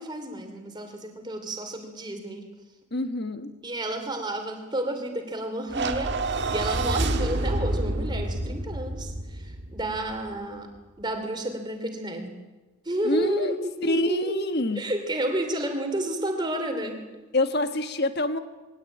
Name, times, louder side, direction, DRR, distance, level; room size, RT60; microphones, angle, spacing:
voice 1, 0.0-2.5 3.6-10.7 11.0-12.4 12.8-14.5 14.8-17.0, right 1 dB, 20° right, 5 dB, 2.7 m, -31 dB
voice 2, 2.9-3.5 13.0-13.5 13.8-14.8 17.3-18.4, left 1 dB, 50° left, 9 dB, 1.4 m, -26 dB
sound 1, 5.7-10.1, right 2 dB, 50° right, 1.5 m, -28 dB
21.0 x 17.5 x 9.0 m, 1.2 s
head